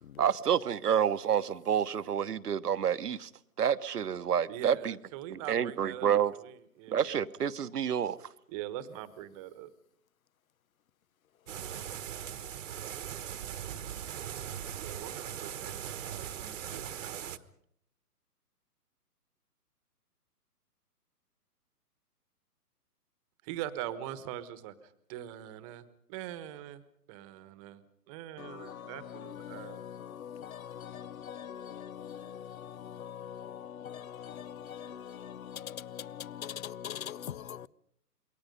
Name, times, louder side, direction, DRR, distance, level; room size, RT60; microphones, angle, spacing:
voice 1, 0.2-3.3 3.6-5.0 5.3-6.3 6.9-8.2, right 8 dB, 70° right, 1.2 m, -28 dB
voice 2, 4.5-7.2 8.5-9.7 14.7-17.2 23.4-24.7 25.1-25.8 26.1-26.8 27.1-27.8 28.1-29.8, right 12 dB, 20° right, 1.3 m, -42 dB
sound 1, 11.5-17.4, right 9 dB, 50° right, 1.3 m, -40 dB
voice 3, 28.4-37.7, left 9 dB, 60° left, 0.8 m, -43 dB
28.0 x 22.5 x 5.4 m
hypercardioid pair, 140°, 48 cm